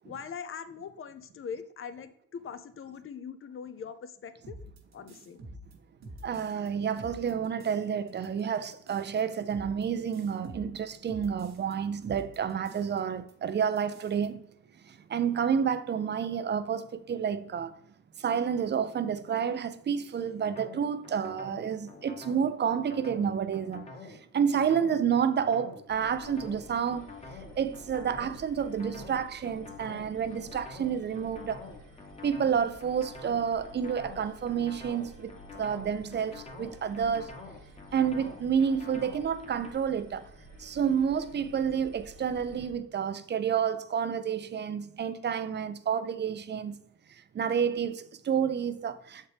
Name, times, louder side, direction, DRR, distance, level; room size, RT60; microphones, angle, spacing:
voice 1, 0.0-4.6 4.9-5.4, left 6 dB, 45° left, 0.7 m, -41 dB
sound 1, 4.4-6.7 7.0-7.8 8.1-11.7 12.0-13.0 13.3-13.4 13.6-14.3, right 1 dB, 60° right, 1.4 m, -48 dB
voice 2, 6.2-14.4 14.8-17.8 18.2-27.1 27.6-31.7 32.2-37.3 37.9-40.3 40.6-46.8 47.1-49.3, right 7 dB, 35° right, 0.5 m, -30 dB
sound 2, 20.4-39.7, left 4 dB, 20° left, 1.2 m, -47 dB
sound 3, 25.9-42.7, left 1 dB, 80° left, 1.5 m, -52 dB
7.0 x 4.4 x 3.4 m
cardioid pair, 90°, 30 cm